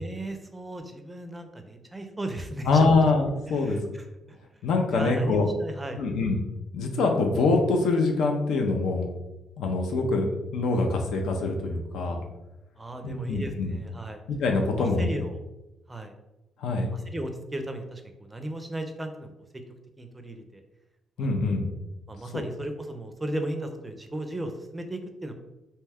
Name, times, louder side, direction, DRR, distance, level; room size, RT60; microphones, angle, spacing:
voice 1, 0.0-2.9 3.5-4.0 4.9-6.0 12.8-14.2 14.7-15.4 15.9-16.1 16.9-19.3 20.0-20.6 21.2-21.5 22.1-25.3, right 1 dB, 15° right, 6 dB, 0.4 m, -36 dB
voice 2, 2.7-3.8 4.6-5.5 6.0-6.4 6.7-9.1 9.6-10.3 10.5-12.2 13.0-13.8 14.3-15.1 16.6-16.9 21.2-21.7 22.3-22.4, left 3 dB, 80° left, 3 dB, 0.5 m, -24 dB
2.7 x 2.2 x 3.4 m, 0.98 s
cardioid pair, 90°, 0 cm